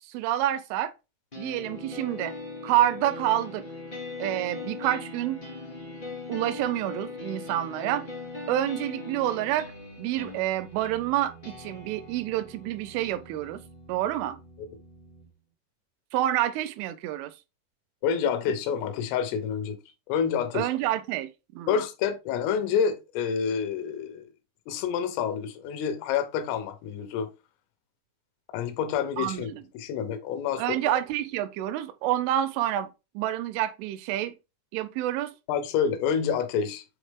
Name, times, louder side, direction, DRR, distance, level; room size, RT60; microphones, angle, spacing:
voice 1, 0.1-0.9 1.4-2.3 2.6-3.6 4.2-5.4 6.3-8.1 8.5-9.7 10.0-13.6 13.9-14.4 16.1-17.3 20.5-21.8 29.2-29.6 30.6-32.9 33.2-34.3 34.7-35.3, right 13 dB, 85° right, 2.9 m, -28 dB
sound 1, 1.3-15.3, left 3 dB, 45° left, 0.6 m, -40 dB
voice 2, 18.0-19.8 20.1-20.7 21.7-24.3 24.7-27.3 28.5-30.8 35.5-36.8, left 7 dB, 85° left, 3.6 m, -28 dB
8.5 x 3.5 x 3.5 m
omnidirectional pair, 5.7 m